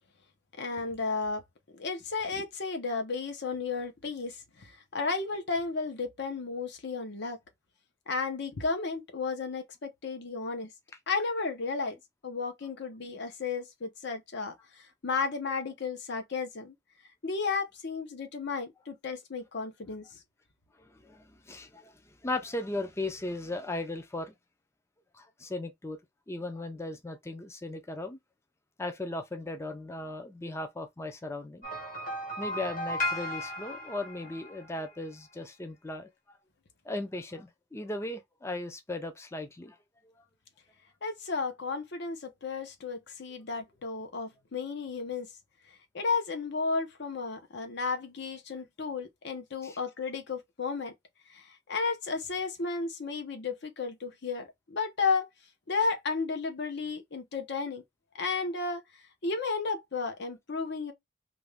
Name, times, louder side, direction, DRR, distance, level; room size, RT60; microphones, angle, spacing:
voice 1, 0.6-1.4 1.7-7.4 8.1-10.7 11.1-12.0 12.2-16.7 17.2-20.2 41.0-45.3 45.9-50.9 51.3-55.3 55.7-57.8 58.2-58.8 59.2-60.9, left 4 dB, 60° left, 0.8 m, -33 dB
voice 2, 21.0-21.9 22.2-24.3 25.1-26.0 26.3-28.2 28.8-31.7 32.4-36.1 36.9-39.8 49.6-49.8, left 2 dB, 15° left, 0.4 m, -37 dB
sound 1, 31.6-35.0, left 1 dB, 45° left, 1.2 m, -35 dB
2.8 x 2.6 x 3.3 m
head